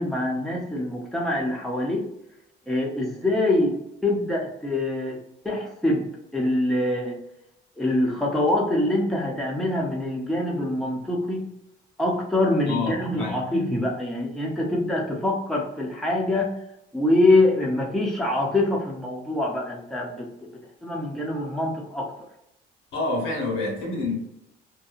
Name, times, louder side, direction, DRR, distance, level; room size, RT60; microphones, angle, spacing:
voice 1, 0.0-2.1 2.7-5.2 5.4-6.1 6.3-7.2 7.8-11.5 12.0-16.6 16.9-20.5 20.8-22.1, left 1 dB, ahead, -2 dB, 0.7 m, -24 dB
voice 2, 12.7-13.4 22.9-24.1, left 3 dB, 90° left, -2 dB, 1.1 m, -28 dB
2.7 x 2.2 x 2.4 m, 0.83 s
cardioid pair, 90°, 20 cm